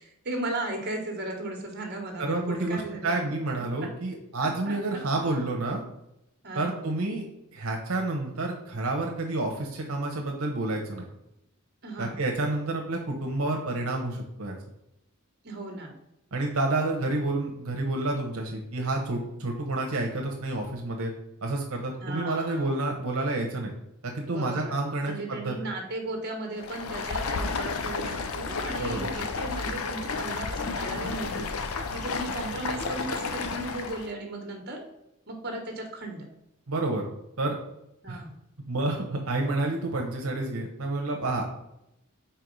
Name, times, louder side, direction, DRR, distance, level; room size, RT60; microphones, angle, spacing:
voice 1, 0.0-3.1 4.6-5.0 6.4-6.8 11.8-12.2 15.4-16.0 22.0-22.7 24.3-24.7 25.0-31.5 31.9-34.8 35.3-36.2 38.0-38.3, right 2 dB, 50° right, 3 dB, 1.4 m, -36 dB
voice 2, 2.2-5.8 6.6-7.2 7.5-11.0 12.0-14.5 16.3-21.1 21.4-23.7 24.0-25.5 28.8-29.1 36.7-37.0 37.4-37.6 38.1-38.2 38.7-41.4, right 2 dB, 80° right, 1 dB, 1.0 m, -29 dB
Stream, 26.5-34.1, left 4 dB, 80° left, 0.6 m, -32 dB
4.6 x 4.3 x 5.3 m, 0.84 s
head